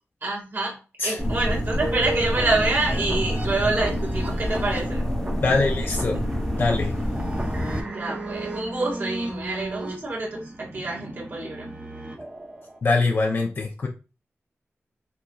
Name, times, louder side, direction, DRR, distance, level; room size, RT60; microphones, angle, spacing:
voice 1, 0.2-5.1 7.9-11.7, right 2 dB, 50° right, -2 dB, 2.0 m, -27 dB
sound 1, 1.2-7.8, equal, 10° left, 1.1 m, -27 dB
sound 2, 1.8-12.8, right 1 dB, 25° right, 0.9 m, -35 dB
voice 2, 5.4-6.2 6.6-6.9 7.7-7.8 12.8-13.9, left 3 dB, 50° left, 0 dB, 0.7 m, -23 dB
5.8 x 3.7 x 2.4 m, 0.33 s
wide cardioid pair, 120°, 5 cm